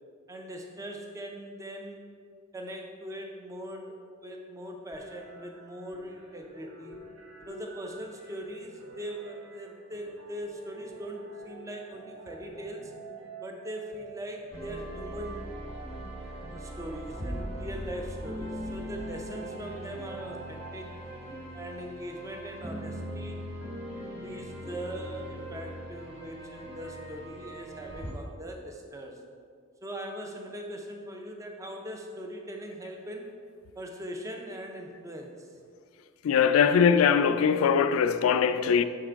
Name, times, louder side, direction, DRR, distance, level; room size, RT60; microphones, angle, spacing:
voice 1, 0.3-2.1 2.5-7.0 7.5-12.9 13.4-15.5 16.5-20.9 21.5-23.4 23.9-29.2 29.8-33.4 33.8-35.5, equal, 15° right, 0.4 m, -41 dB
sound 1, 4.9-20.9, right 3 dB, 75° right, 1.0 m, -48 dB
sound 2, 14.5-28.1, equal, 60° right, 1.4 m, -40 dB
voice 2, 36.2-38.8, left 7 dB, 80° left, 0.3 m, -21 dB
6.5 x 3.7 x 4.5 m
head